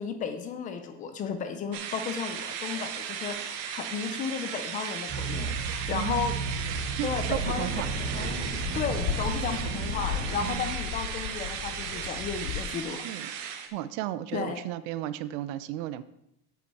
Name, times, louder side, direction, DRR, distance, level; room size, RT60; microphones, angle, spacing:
voice 1, 0.0-6.4 7.0-13.1 14.3-14.6, left 6 dB, 20° left, 8 dB, 0.3 m, -34 dB
sound 1, 1.7-13.7, right 8 dB, 80° right, 1.5 m, -36 dB
sound 2, 5.1-10.5, right 4 dB, 25° right, 2.8 m, -33 dB
voice 2, 5.9-6.5 7.0-7.9 10.4-10.7 13.0-13.3 13.7-16.0, right 13 dB, 60° right, 14 dB, 0.7 m, -34 dB
sound 3, 6.4-12.8, left 12 dB, 85° left, 0.7 m, -37 dB
8.2 x 7.0 x 4.7 m, 0.81 s
cardioid pair, 165°, 48 cm